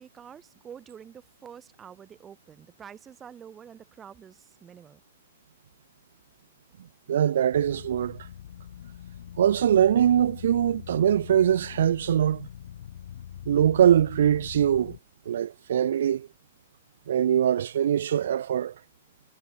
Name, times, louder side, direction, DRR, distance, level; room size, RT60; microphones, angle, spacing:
voice 1, 0.0-5.0, right 8 dB, 15° right, 4.9 m, -47 dB
voice 2, 7.1-8.2 9.4-12.5 13.5-15.0 15.3-16.3 17.1-18.7, right 10 dB, 75° right, 0.5 m, -22 dB
sound 1, 7.5-15.0, left 10 dB, 70° left, 5.3 m, -43 dB
hypercardioid pair, 145°, 0 cm